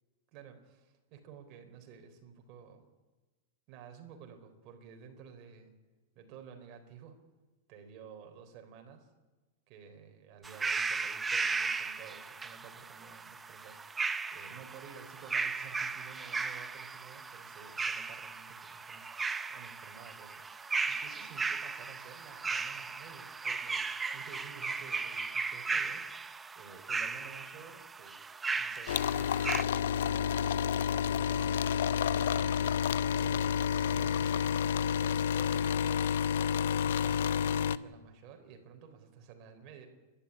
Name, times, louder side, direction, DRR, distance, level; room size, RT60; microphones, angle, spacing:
voice 1, 0.3-2.9 3.7-5.8 6.2-7.2 7.7-9.1 9.7-19.1 19.5-23.9 24.1-28.2 28.5-36.0 36.6-39.9, right 7 dB, 35° right, 4 dB, 4.0 m, -52 dB
sound 1, 10.4-29.6, right 4 dB, 10° right, 0.7 m, -36 dB
sound 2, 28.9-37.8, left 8 dB, 80° left, 0.7 m, -29 dB
28.5 x 12.0 x 9.9 m, 1.2 s
supercardioid pair, 165°, 0 cm